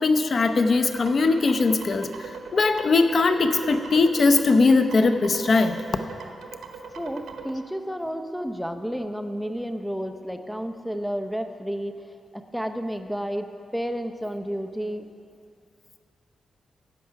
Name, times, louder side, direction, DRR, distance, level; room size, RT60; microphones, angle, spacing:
voice 1, 0.0-2.1 2.5-5.8, left 3 dB, 50° left, 8 dB, 0.8 m, -20 dB
sound 1, 0.6-7.5, right 5 dB, 80° right, 1.1 m, -40 dB
voice 2, 7.0-12.0 12.3-15.0, equal, ahead, 7 dB, 0.8 m, -31 dB
14.0 x 8.6 x 5.8 m, 2.4 s
cardioid pair, 90°, 0 cm